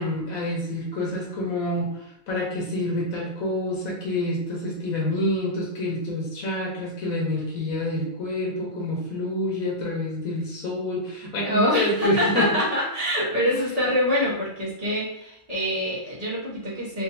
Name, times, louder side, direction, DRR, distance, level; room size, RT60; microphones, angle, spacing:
voice 1, 0.0-12.5 13.5-13.6, left 1 dB, 75° left, -3 dB, 1.5 m, -27 dB
voice 2, 11.4-17.0, left 1 dB, 30° right, -8 dB, 1.1 m, -25 dB
3.7 x 2.6 x 2.6 m, 0.77 s
omnidirectional pair, 1.5 m